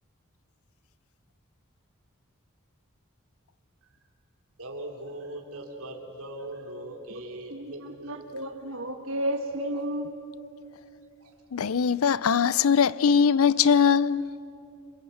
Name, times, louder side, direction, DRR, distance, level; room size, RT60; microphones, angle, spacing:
voice 1, 4.6-8.1 11.2-11.3, right 1 dB, 85° right, 3.1 m, -40 dB
voice 2, 7.5-10.2, right 1 dB, 70° right, 1.3 m, -32 dB
voice 3, 11.5-14.2, left 6 dB, 75° left, 0.5 m, -21 dB
28.5 x 26.0 x 8.0 m
head